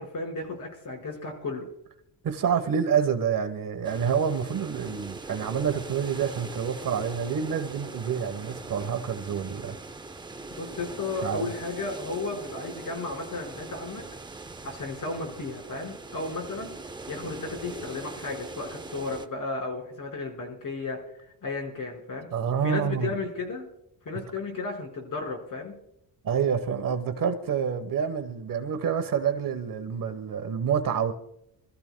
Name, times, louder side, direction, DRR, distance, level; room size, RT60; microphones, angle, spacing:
voice 1, 0.0-1.7 10.5-14.0 14.6-16.7 17.1-21.0 21.4-22.3 22.6-23.7 24.0-25.7, left 3 dB, 50° left, 5.1 m, -34 dB
voice 2, 2.2-9.8 11.2-11.5 22.3-23.1 26.2-31.1, right 7 dB, 50° right, 1.2 m, -28 dB
sound 1, 3.8-19.3, right 3 dB, 10° right, 0.5 m, -41 dB
27.5 x 14.0 x 2.2 m
cardioid pair, 130°, 43 cm